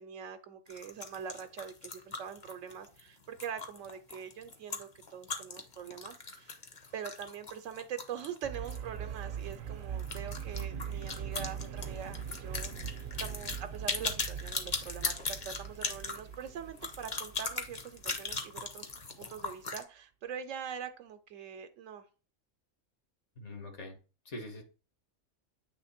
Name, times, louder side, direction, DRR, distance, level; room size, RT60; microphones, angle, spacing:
voice 1, 0.0-6.5 6.9-18.9 19.2-22.1, right 8 dB, 80° right, 7 dB, 1.0 m, -43 dB
sound 1, 0.7-8.9 9.1-9.2 9.5-9.6 10.0-19.8, left 4 dB, 40° left, 0.9 m, -39 dB
sound 2, 8.4-18.4, right 8 dB, 55° right, 0.7 m, -41 dB
voice 2, 23.4-24.0 24.3-24.6, left 1 dB, 65° left, 3 dB, 1.7 m, -43 dB
8.4 x 3.2 x 4.2 m, 0.36 s
omnidirectional pair, 1.3 m